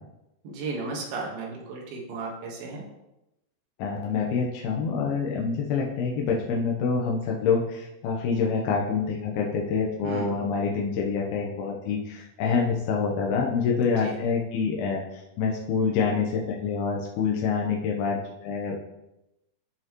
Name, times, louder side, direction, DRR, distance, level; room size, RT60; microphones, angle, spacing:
voice 1, 0.4-2.8 10.0-10.3 13.8-14.2, right 3 dB, 70° right, -1 dB, 3.2 m, -34 dB
voice 2, 3.8-18.8, left 5 dB, 75° left, -2 dB, 2.7 m, -26 dB
12.5 x 5.5 x 3.0 m, 0.91 s
omnidirectional pair, 4.8 m